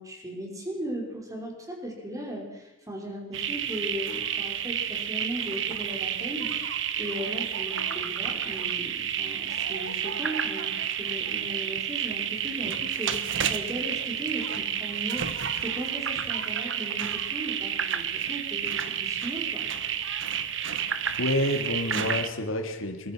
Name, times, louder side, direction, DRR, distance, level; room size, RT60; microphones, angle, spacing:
voice 1, 0.0-6.5 7.0-19.7, right 1 dB, 15° right, 1 dB, 5.5 m, -37 dB
sound 1, 3.3-22.3, right 8 dB, 65° right, 1.4 m, -30 dB
voice 2, 20.9-23.1, left 1 dB, 85° left, 4 dB, 2.5 m, -29 dB
24.0 x 22.0 x 6.3 m, 1.0 s
head